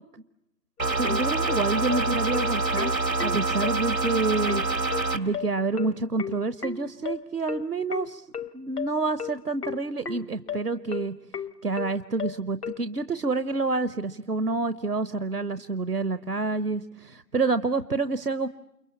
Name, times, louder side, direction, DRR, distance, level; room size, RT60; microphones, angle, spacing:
sound 1, 0.8-12.8, left 7 dB, 65° left, 1.0 m, -34 dB
sound 2, 0.8-5.2, right 3 dB, 90° right, 2.5 m, -26 dB
voice 1, 1.0-4.6 5.1-8.2 8.5-11.1 11.6-18.5, right 3 dB, 65° right, 14 dB, 1.0 m, -28 dB
29.5 x 22.5 x 8.5 m, 0.85 s
figure-of-eight pair, 165°, 49 cm